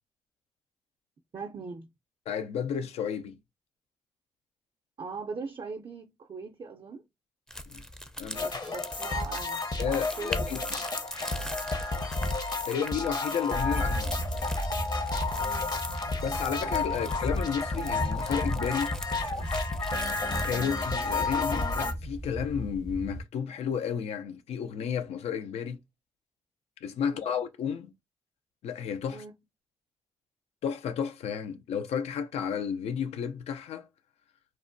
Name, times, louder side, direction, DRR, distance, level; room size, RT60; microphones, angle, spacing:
voice 1, 1.3-1.9 5.0-7.1 8.3-9.6 9.9-10.5 15.4-15.9 27.0-27.3 29.1-29.3, right 4 dB, 50° right, 0.5 m, -40 dB
voice 2, 2.3-3.4 7.7-7.8 8.2-8.6 9.8-10.8 12.7-14.1 16.2-18.9 20.3-25.8 26.8-27.9 28.6-29.2 30.6-33.9, left 7 dB, 80° left, 0.4 m, -32 dB
sound 1, 7.5-21.3, equal, 5° left, 0.5 m, -43 dB
sound 2, 8.3-21.9, left 3 dB, 40° left, 0.7 m, -31 dB
sound 3, 13.6-23.2, equal, 60° left, 1.1 m, -37 dB
3.0 x 2.1 x 2.5 m
supercardioid pair, 40°, 11 cm